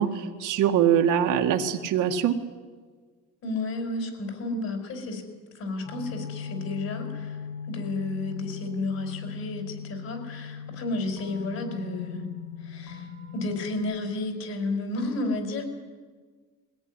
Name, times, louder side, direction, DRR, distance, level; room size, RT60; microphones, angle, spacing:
voice 1, 0.0-2.4, right 9 dB, 65° right, 4 dB, 1.8 m, -23 dB
voice 2, 3.4-5.2 5.5-7.4 7.7-12.3 12.6-15.6, left 2 dB, 50° left, 5 dB, 5.1 m, -32 dB
sound 1, 5.8-13.8, left 7 dB, 80° left, 6.6 m, -38 dB
22.0 x 17.5 x 9.9 m, 1.5 s
cardioid pair, 180°, 33 cm